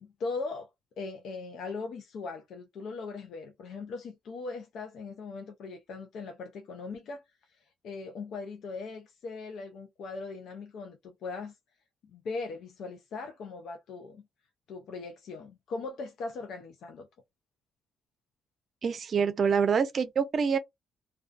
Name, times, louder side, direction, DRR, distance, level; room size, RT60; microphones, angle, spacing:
voice 1, 0.0-0.7 1.0-7.2 7.5-11.5 12.1-14.2 14.7-17.1, left 4 dB, 75° left, 0.4 m, -39 dB
voice 2, 18.8-20.6, right 6 dB, 50° right, 0.4 m, -26 dB
2.4 x 2.2 x 2.4 m
cardioid pair, 90°, 0 cm